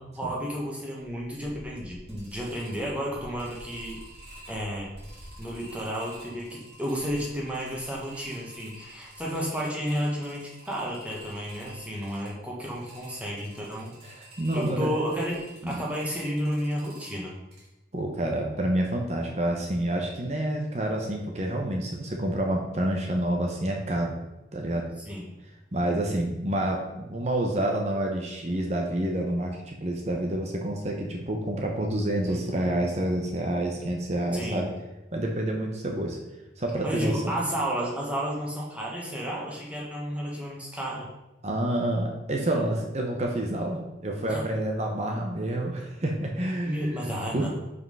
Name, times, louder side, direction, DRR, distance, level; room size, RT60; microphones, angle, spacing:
voice 1, 0.0-4.0 4.5-4.9 5.4-14.0 14.5-17.4 25.0-25.2 32.3-32.9 34.3-34.7 36.8-41.1 44.3-44.4 46.6-47.5, equal, 5° right, -4 dB, 1.5 m, -32 dB
sound 1, 1.0-17.7, right 1 dB, 60° right, 2.5 m, -49 dB
voice 2, 14.0-15.0 15.6-15.8 17.9-24.1 24.5-24.9 25.7-34.7 35.1-36.2 36.6-37.4 41.4-47.5, right 1 dB, 35° right, 1 dB, 0.9 m, -28 dB
5.8 x 5.4 x 5.5 m, 0.97 s
head